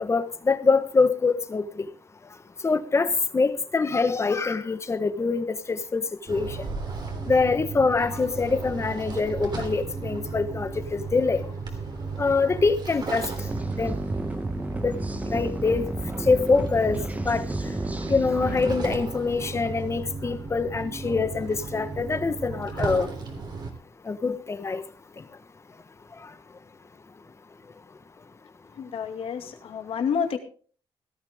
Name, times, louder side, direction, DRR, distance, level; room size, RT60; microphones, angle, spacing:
voice 1, 0.0-1.9 2.6-6.0 6.3-6.6 7.3-11.4 12.2-13.3 13.8-13.9 14.8-14.9 15.3-15.9 16.3-17.4 18.1-23.1 24.1-24.8, left 4 dB, 25° left, 11 dB, 1.3 m, -24 dB
sound 1, 6.3-23.7, right 4 dB, 45° right, 3.4 m, -35 dB
sound 2, 13.4-18.9, right 2 dB, 15° right, 1.3 m, -32 dB
voice 2, 28.8-30.4, left 7 dB, 70° left, 6 dB, 2.4 m, -29 dB
17.0 x 13.0 x 3.6 m, 0.41 s
cardioid pair, 115°, 10 cm